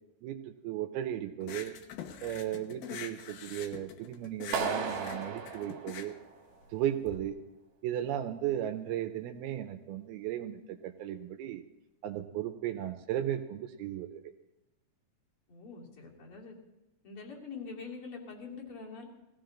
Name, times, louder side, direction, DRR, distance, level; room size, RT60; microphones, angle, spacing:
voice 1, 0.2-1.8 2.2-6.2 6.7-7.4 7.8-11.6 12.0-14.2, right 11 dB, 80° right, 8 dB, 2.4 m, -35 dB
sound 1, 1.4-7.2, left 9 dB, 70° left, 2.7 m, -45 dB
Clapping, 4.5-6.6, right 5 dB, 55° right, 2.7 m, -35 dB
voice 2, 15.5-16.5 17.0-19.1, left 4 dB, 35° left, -1 dB, 3.0 m, -44 dB
19.0 x 15.5 x 3.9 m, 0.99 s
omnidirectional pair, 4.6 m